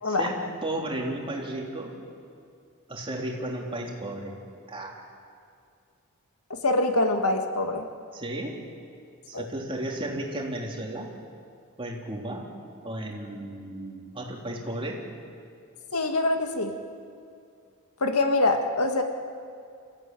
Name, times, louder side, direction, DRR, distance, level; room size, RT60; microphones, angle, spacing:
voice 1, 0.0-1.9 2.9-4.4 4.7-5.0 8.1-8.6 9.3-11.1 11.8-12.5 12.8-15.0, right 1 dB, 25° right, -1 dB, 3.5 m, -34 dB
voice 2, 6.5-7.9 9.3-9.5 15.9-16.8 18.0-19.0, left 2 dB, 80° left, 5 dB, 2.0 m, -24 dB
27.5 x 15.5 x 9.2 m, 2.4 s
head